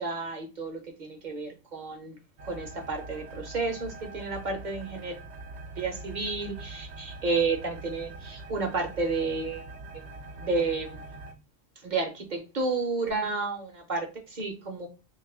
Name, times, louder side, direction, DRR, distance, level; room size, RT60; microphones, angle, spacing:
voice 1, 0.0-2.2 2.4-5.1 5.7-9.7 9.9-10.0 10.4-11.0 11.8-14.9, right 3 dB, 50° right, 3 dB, 0.8 m, -31 dB
sound 1, 2.4-11.3, right 2 dB, 75° right, 0.9 m, -43 dB
3.1 x 2.4 x 3.2 m, 0.31 s
omnidirectional pair, 1.1 m